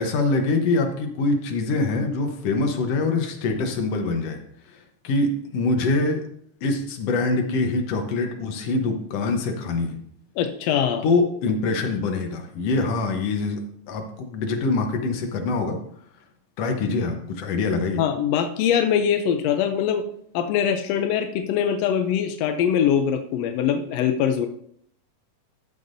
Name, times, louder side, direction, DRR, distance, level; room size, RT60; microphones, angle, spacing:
voice 1, 0.0-4.4 4.7-4.8 5.0-6.2 6.6-10.0 11.0-13.6 13.9-15.8 16.6-18.0, left 3 dB, 60° left, 4 dB, 1.9 m, -24 dB
voice 2, 10.4-11.0 18.0-20.0 20.3-24.5, left 8 dB, 80° left, 7 dB, 1.4 m, -22 dB
13.0 x 7.1 x 2.6 m, 0.66 s
omnidirectional pair, 3.6 m